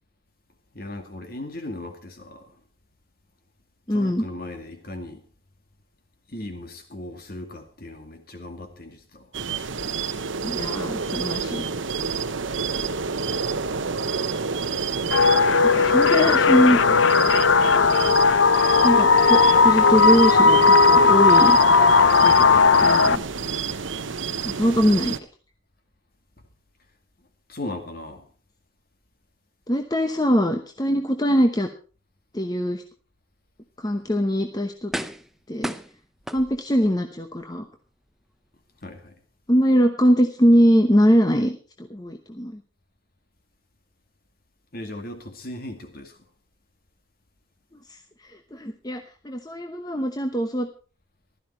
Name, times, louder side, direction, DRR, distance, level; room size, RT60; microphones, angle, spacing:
voice 1, 0.7-2.6 3.9-5.2 6.3-9.3 27.5-28.3 38.8-39.1 44.7-46.2, left 1 dB, 50° left, 2.3 m, -37 dB
voice 2, 3.9-4.2 10.4-11.6 15.6-16.8 18.8-21.6 22.1-23.2 24.6-25.2 29.7-31.7 32.3-32.8 33.8-34.9 35.5-35.7 36.3-37.7 39.5-42.6 47.9-48.0 48.2-50.7, equal, 20° left, 1.0 m, -22 dB
sound 1, 9.3-25.2, right 5 dB, 75° right, 0.9 m, -29 dB
sound 2, 15.1-23.2, left 4 dB, 70° left, 0.6 m, -16 dB
sound 3, 34.0-34.1 34.9-35.4 35.6-36.9 37.4-37.5, equal, ahead, 0.6 m, -33 dB
15.5 x 12.5 x 4.4 m
head